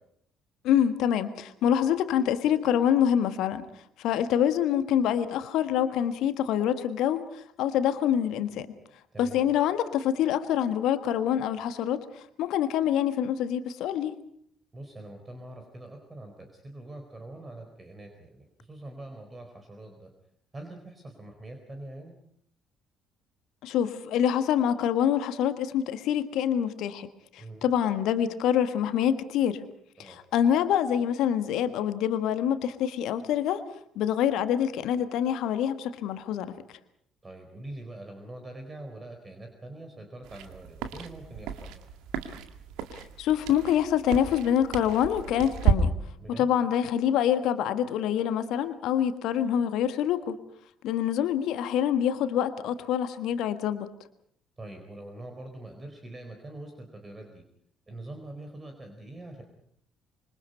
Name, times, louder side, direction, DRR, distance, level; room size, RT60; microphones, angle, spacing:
voice 1, 0.6-3.6 4.0-8.7 9.2-14.2 23.6-27.1 27.3-29.6 30.0-33.6 33.9-36.5 42.9-45.9 46.4-50.4 50.8-53.9, left 9 dB, 60° left, 10 dB, 1.5 m, -26 dB
voice 2, 9.1-9.4 14.7-20.1 20.5-22.1 27.4-27.7 30.0-30.2 37.2-41.9 46.2-46.5 54.6-57.4 57.9-59.4, right 1 dB, 25° right, 4 dB, 4.4 m, -44 dB
sound 1, 40.2-45.7, right 8 dB, 60° right, 2.0 m, -32 dB
26.5 x 24.5 x 5.5 m, 0.70 s
figure-of-eight pair, 50°, 0 cm